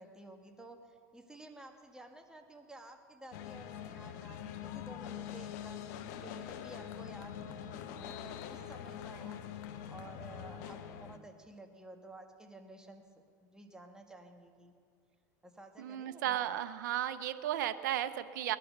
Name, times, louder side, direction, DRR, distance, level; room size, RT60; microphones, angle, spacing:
voice 1, 0.0-9.4 9.9-13.0 13.4-14.7 15.4-16.6, right 2 dB, 5° right, 4 dB, 1.7 m, -53 dB
sound 1, 3.3-11.2, left 9 dB, 70° left, 1.1 m, -44 dB
voice 2, 15.8-18.6, right 11 dB, 80° right, 12 dB, 0.7 m, -34 dB
19.5 x 11.0 x 6.6 m, 2.1 s
supercardioid pair, 110°, 10 cm